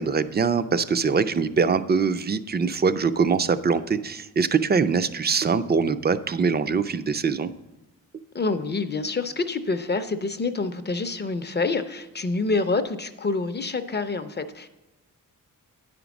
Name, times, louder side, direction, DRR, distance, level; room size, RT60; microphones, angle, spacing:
voice 1, 0.0-7.5, right 5 dB, 30° right, 13 dB, 0.4 m, -23 dB
voice 2, 8.3-14.7, left 3 dB, 30° left, 9 dB, 0.5 m, -27 dB
9.4 x 5.1 x 7.0 m, 1.1 s
wide cardioid pair, 160°, 34 cm